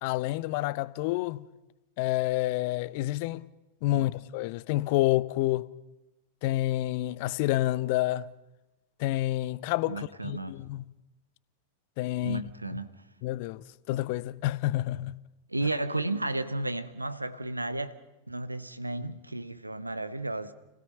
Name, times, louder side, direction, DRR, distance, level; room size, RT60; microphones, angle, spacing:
voice 1, 0.0-1.4 2.0-3.4 3.8-5.7 6.4-8.3 9.0-10.8 12.0-12.4 13.2-13.6 13.9-15.2, left 16 dB, 45° left, 0.6 m, -28 dB
voice 2, 9.9-10.5 12.2-12.9 15.5-18.0 18.3-20.5, right 2 dB, 85° right, 1.0 m, -33 dB
30.0 x 16.5 x 5.5 m
figure-of-eight pair, 90°, 0 cm